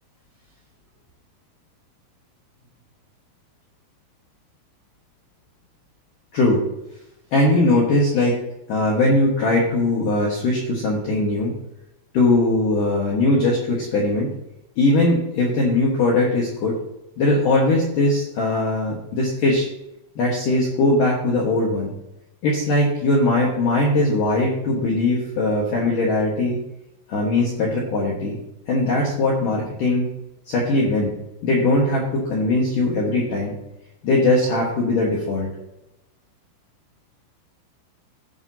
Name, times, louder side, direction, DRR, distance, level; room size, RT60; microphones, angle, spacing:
voice 1, 7.3-8.3 8.7-11.5 12.1-14.3 14.8-16.8 17.2-19.7 20.2-21.9 22.4-26.6 27.1-28.4 28.7-30.1 30.5-31.1 31.4-33.5 34.0-35.5, left 2 dB, 70° left, -4 dB, 2.1 m, -20 dB
17.0 x 5.9 x 2.8 m, 0.87 s
omnidirectional pair, 6.0 m